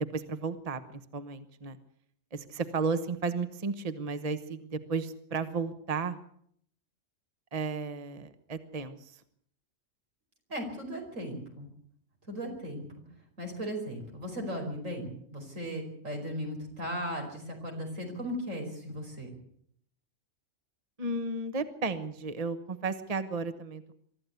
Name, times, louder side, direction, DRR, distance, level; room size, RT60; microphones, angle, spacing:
voice 1, 0.1-0.8 1.1-1.8 2.3-6.2 7.5-9.1 21.0-23.9, right 4 dB, 30° right, 10 dB, 1.2 m, -33 dB
voice 2, 10.5-11.7 12.3-12.8 13.4-19.3, equal, 85° right, 3 dB, 5.3 m, -37 dB
24.0 x 13.5 x 8.2 m, 0.66 s
omnidirectional pair, 1.3 m